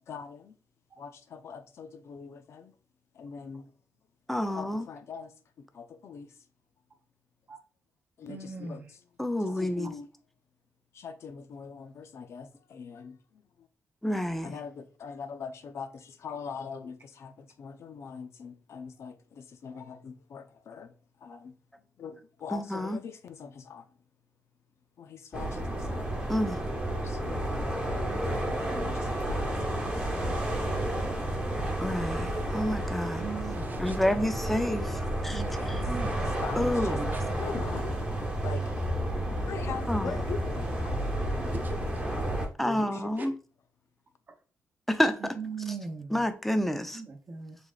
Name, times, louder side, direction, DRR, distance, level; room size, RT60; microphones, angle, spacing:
voice 1, 0.1-0.6 1.0-2.7 3.1-3.7 4.5-6.3 8.2-8.8 9.4-10.1 10.9-13.7 14.4-20.9 21.2-21.6 22.0-23.9 25.0-26.1 27.0-27.5 28.5-29.6 29.8-30.1 35.6-35.9 36.2-38.0 38.4-38.7 39.3-41.8 42.6-43.3, left 6 dB, 60° left, 0.5 m, -42 dB
voice 2, 4.3-4.8 9.2-9.9 14.0-14.5 22.5-23.0 26.3-26.6 31.8-33.2 33.8-35.4 36.6-37.1 39.9-40.1 42.6-43.3 44.9-45.1 46.1-47.0, left 1 dB, 5° left, 0.5 m, -29 dB
voice 3, 8.3-8.9 9.5-9.6 21.3-21.4 33.2-34.0 35.3-36.2 37.1-37.2 41.5-41.7 43.2-43.3 44.3-44.4 45.2-46.2 46.9-47.6, right 5 dB, 35° right, 0.8 m, -40 dB
sound 1, 25.3-42.5, right 1 dB, 15° right, 1.1 m, -31 dB
6.1 x 3.3 x 2.4 m
wide cardioid pair, 135°, 5 cm